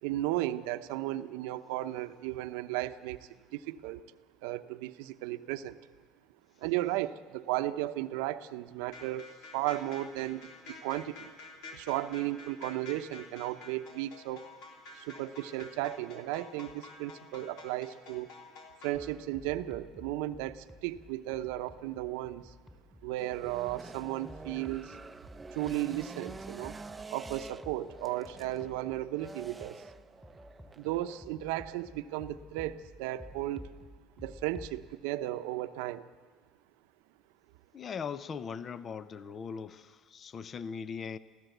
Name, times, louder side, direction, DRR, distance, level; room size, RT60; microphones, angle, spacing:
voice 1, 0.0-4.0 4.4-5.8 6.6-9.3 9.5-10.5 10.8-11.3 11.7-14.4 14.9-18.3 18.8-22.5 23.0-25.0 25.5-26.8 27.1-29.8 30.8-33.6 34.2-36.0, right 15 dB, 85° right, 0.8 m, -35 dB
sound 1, 8.8-18.9, left 3 dB, 75° left, 3.4 m, -49 dB
sound 2, 18.9-34.8, equal, 10° left, 3.5 m, -53 dB
sound 3, 23.2-31.2, right 3 dB, 20° right, 0.6 m, -47 dB
voice 2, 37.7-41.2, left 6 dB, 35° left, 0.6 m, -40 dB
23.0 x 15.5 x 8.0 m
supercardioid pair, 110°, 0 cm